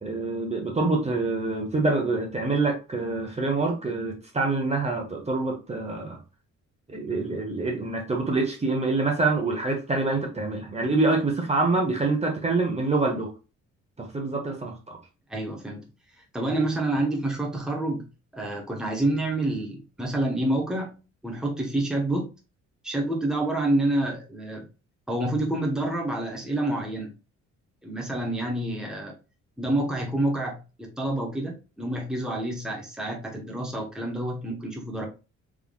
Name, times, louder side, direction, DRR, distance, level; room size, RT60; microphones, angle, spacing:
voice 1, 0.0-6.2 6.9-13.3 14.0-15.0, right 3 dB, 20° right, 1.2 m, -26 dB
voice 2, 15.3-15.9 16.3-18.0 18.3-22.3 22.8-24.7 25.1-27.1 27.8-29.1 29.6-35.1, right 1 dB, ahead, 1.2 m, -28 dB
3.7 x 3.4 x 2.4 m
cardioid pair, 90°, 30 cm